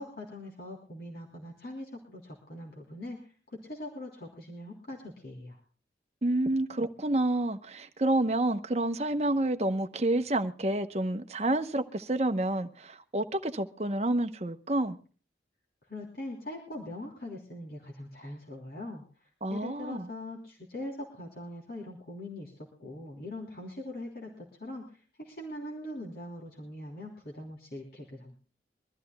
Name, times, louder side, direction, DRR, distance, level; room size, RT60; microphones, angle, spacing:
voice 1, 0.0-5.6 15.9-28.3, left 1 dB, 55° left, 3.3 m, -42 dB
voice 2, 6.2-15.0 19.4-20.1, right 1 dB, 35° right, 0.9 m, -29 dB
24.0 x 13.5 x 2.2 m
head